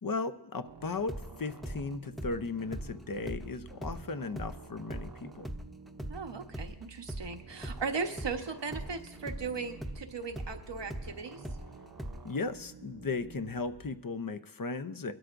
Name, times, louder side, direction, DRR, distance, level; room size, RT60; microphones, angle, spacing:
voice 1, 0.0-5.5 12.2-15.1, left 3 dB, 50° left, 10 dB, 0.8 m, -36 dB
sound 1, 0.6-13.9, right 5 dB, 55° right, 0.8 m, -52 dB
sound 2, 1.0-7.9 8.2-12.4, right 1 dB, ahead, 0.8 m, -41 dB
voice 2, 6.1-11.4, right 5 dB, 90° right, 5 dB, 1.2 m, -37 dB
22.0 x 12.5 x 2.6 m, 0.87 s
wide cardioid pair, 55°, 42 cm